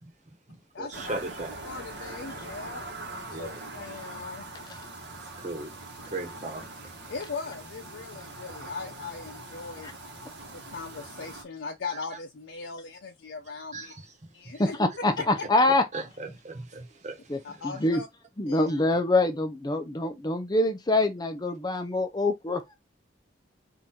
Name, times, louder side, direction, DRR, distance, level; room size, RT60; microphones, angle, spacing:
voice 1, 0.0-1.5 3.3-3.6 5.4-5.7 6.1-6.7 13.7-14.1 15.9-17.6 21.7-21.8, right 2 dB, 40° right, 1.2 m, -38 dB
voice 2, 0.7-1.2 1.6-4.4 7.1-9.9 10.7-13.9 14.3-14.8 15.2-15.5 17.4-18.1 18.5-18.7, left 4 dB, 80° left, 0.6 m, -39 dB
sound 1, 0.9-11.4, right 2 dB, 75° right, 1.3 m, -42 dB
voice 3, 14.6-15.8 17.3-17.4 17.8-18.0 18.4-22.8, left 2 dB, 25° left, 0.6 m, -25 dB
3.8 x 2.6 x 4.4 m
head